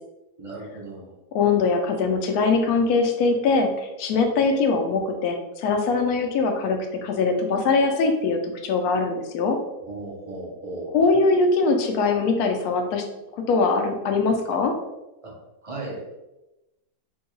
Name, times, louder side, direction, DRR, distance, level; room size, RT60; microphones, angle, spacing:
voice 1, 0.4-1.1 9.8-10.9 15.2-15.3 15.6-16.1, right 2 dB, 35° right, -4 dB, 0.5 m, -35 dB
voice 2, 1.3-9.6 10.9-13.0 13.3-14.7, left 4 dB, 75° left, 4 dB, 1.0 m, -22 dB
4.3 x 2.3 x 3.0 m, 0.96 s
omnidirectional pair, 1.7 m